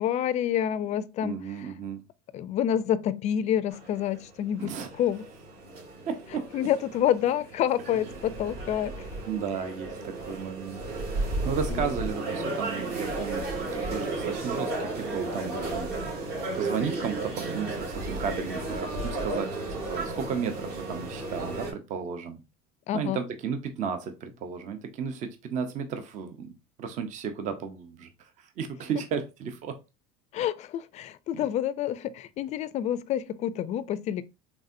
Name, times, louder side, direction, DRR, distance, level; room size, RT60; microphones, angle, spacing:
voice 1, 0.0-1.7 2.3-5.2 6.5-9.1 11.7-11.9 22.9-23.2 30.3-34.2, left 10 dB, 40° left, 0.4 m, -28 dB
voice 2, 1.2-2.0 4.6-4.9 6.1-6.5 9.3-10.8 11.1-15.9 16.5-22.4 22.9-29.8 31.3-31.4, right 6 dB, 40° right, 0.6 m, -34 dB
sound 1, 3.7-21.7, right 2 dB, 60° right, 2.1 m, -34 dB
4.0 x 3.5 x 2.5 m
supercardioid pair, 125°, 19 cm